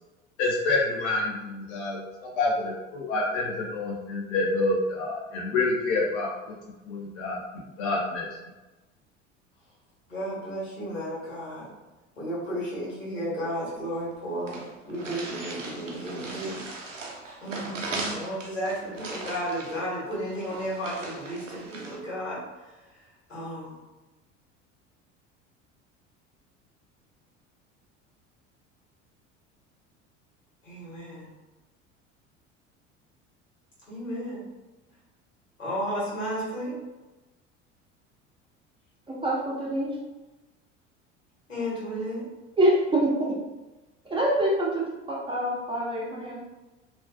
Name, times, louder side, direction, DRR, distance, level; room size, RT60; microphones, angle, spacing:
voice 1, 0.4-2.0 2.4-6.5 6.9-8.3, left 2 dB, 50° left, -3 dB, 0.5 m, -27 dB
voice 2, 10.1-11.7 12.2-16.6 17.4-22.4 23.3-23.8 30.6-31.3 33.9-34.4 35.6-36.8 41.5-42.2, equal, 85° left, -8 dB, 1.1 m, -33 dB
sound 1, 13.8-13.9 14.1-14.2 14.5-22.0, right 3 dB, 90° right, 0.5 m, -38 dB
voice 3, 39.1-40.0 42.6-43.3 44.1-46.4, right 1 dB, 15° right, -4 dB, 0.5 m, -25 dB
2.4 x 2.3 x 2.2 m, 1.1 s
figure-of-eight pair, 65°, 37 cm